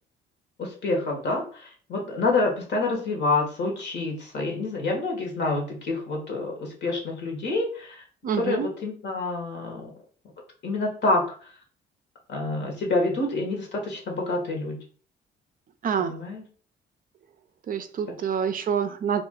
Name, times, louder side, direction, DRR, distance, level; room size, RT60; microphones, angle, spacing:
voice 1, 0.6-8.0 8.3-9.9 10.6-11.2 12.3-14.8 16.0-16.4, left 2 dB, 60° left, 1.1 m, -27 dB
voice 2, 8.2-8.7 15.8-16.2 17.7-19.2, right 7 dB, 45° right, 0.4 m, -27 dB
2.4 x 2.3 x 3.6 m
cardioid pair, 90°, 20 cm